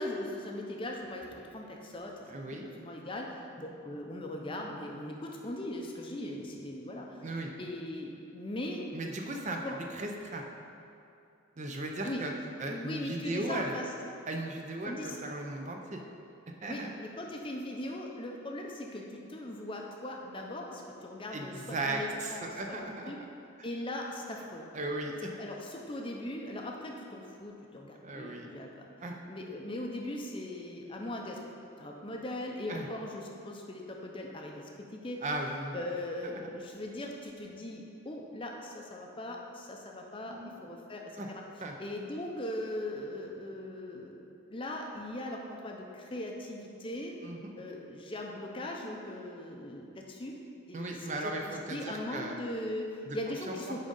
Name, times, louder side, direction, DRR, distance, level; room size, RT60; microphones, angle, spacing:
voice 1, 0.0-2.2 2.5-8.9 9.6-9.8 12.0-12.3 12.7-13.9 14.8-15.2 16.7-23.2 23.6-24.7 25.4-28.9 29.3-31.4 31.8-35.3 35.7-41.4 41.8-44.2 44.5-47.1 47.5-50.4 50.7-53.9, left 1 dB, 25° left, 0 dB, 0.6 m, -39 dB
voice 2, 2.3-2.7 7.2-7.5 8.9-9.6 9.9-10.4 11.6-12.3 12.6-13.8 14.3-16.0 16.6-16.9 21.3-23.1 24.7-25.3 28.0-28.5 29.0-29.2 32.7-32.9 35.2-35.8 36.3-36.4 40.3-40.8 41.2-41.3 41.6-41.7 47.2-47.5 50.7-52.3 53.1-53.2 53.5-53.9, right 2 dB, 35° right, 2 dB, 0.5 m, -37 dB
8.9 x 3.7 x 5.3 m, 2.6 s
head